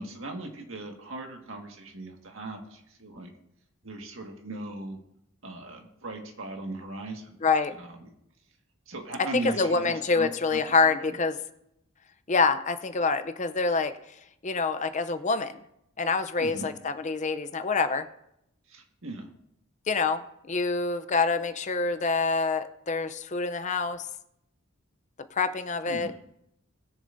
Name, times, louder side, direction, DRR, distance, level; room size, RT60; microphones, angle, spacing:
voice 1, 0.0-3.3 3.8-5.0 5.4-7.4 7.8-8.1 8.9-11.1 16.4-16.7 18.7-19.3 25.9-26.2, right 2 dB, 65° right, 2 dB, 1.8 m, -38 dB
voice 2, 7.4-7.7 9.3-11.4 12.3-13.9 14.4-15.6 16.0-18.1 19.9-20.2 20.5-24.1 25.3-26.1, left 4 dB, 35° left, 11 dB, 0.6 m, -26 dB
20.0 x 7.1 x 2.6 m, 0.78 s
head